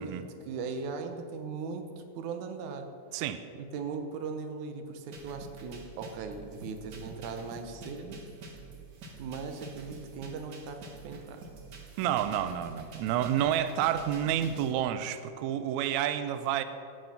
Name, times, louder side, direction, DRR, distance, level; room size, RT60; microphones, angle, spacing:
voice 1, 0.0-1.9 2.2-2.9 3.6-8.2 9.2-11.4, right 5 dB, 70° right, 6 dB, 2.2 m, -38 dB
sound 1, 5.1-14.7, right 3 dB, 50° right, 1.2 m, -47 dB
voice 2, 12.0-16.6, right 10 dB, 90° right, 11 dB, 1.6 m, -29 dB
15.5 x 7.8 x 5.8 m, 2.5 s
omnidirectional pair, 3.8 m